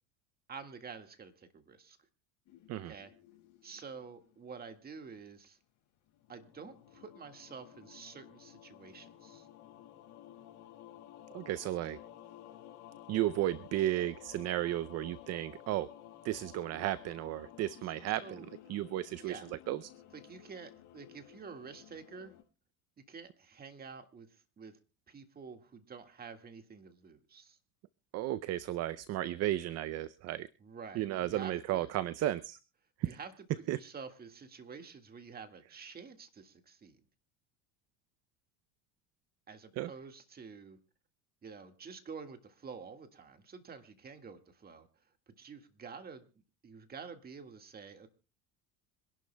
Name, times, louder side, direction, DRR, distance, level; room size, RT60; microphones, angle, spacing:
voice 1, 0.5-2.0 2.8-3.1 3.6-5.6 6.3-9.5 17.8-17.9 18.2-18.4 19.1-19.5 20.1-22.3 23.0-24.8 25.1-27.6 30.6-31.9 33.0-37.0 39.5-40.8 41.4-44.9 45.3-46.3 46.6-48.1, right 5 dB, 25° right, 7 dB, 1.8 m, -49 dB
sound 1, 2.5-5.5 6.0-22.4, left 11 dB, 55° left, 5.2 m, -54 dB
voice 2, 11.3-12.0 13.1-15.9 16.2-18.4 18.7-19.4 19.7-19.9 28.1-30.5 31.0-32.6 33.0-33.2 33.7-33.8 39.8-39.9, right 14 dB, 45° right, 15 dB, 0.5 m, -34 dB
26.0 x 11.5 x 2.2 m, 0.34 s
supercardioid pair, 110°, 35 cm